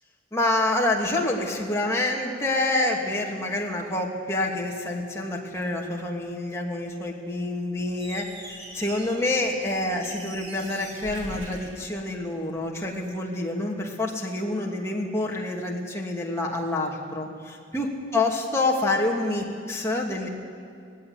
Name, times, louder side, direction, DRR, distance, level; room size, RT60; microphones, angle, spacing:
voice 1, 0.3-20.3, left 2 dB, 15° left, -2 dB, 2.7 m, -27 dB
Squeak, 7.9-12.6, right 2 dB, 80° right, 3.8 m, -42 dB
18.5 x 16.5 x 9.9 m, 2.4 s
head